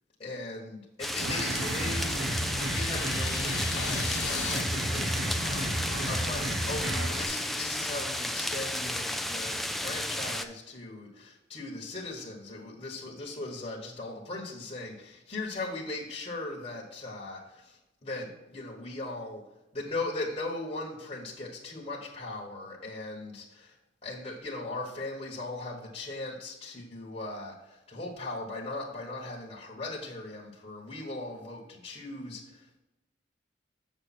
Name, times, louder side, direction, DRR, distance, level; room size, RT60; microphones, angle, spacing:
voice 1, 0.2-2.2 2.7-19.4 19.7-23.8 24.0-32.8, left 2 dB, 35° left, -3 dB, 1.3 m, -39 dB
sound 1, 1.0-10.4, left 1 dB, ahead, 0.4 m, -33 dB
sound 2, 1.2-7.3, right 1 dB, 80° right, 1.1 m, -33 dB
sound 3, 2.0-4.6, left 8 dB, 65° left, 1.0 m, -38 dB
7.4 x 6.4 x 4.2 m, 1.0 s
head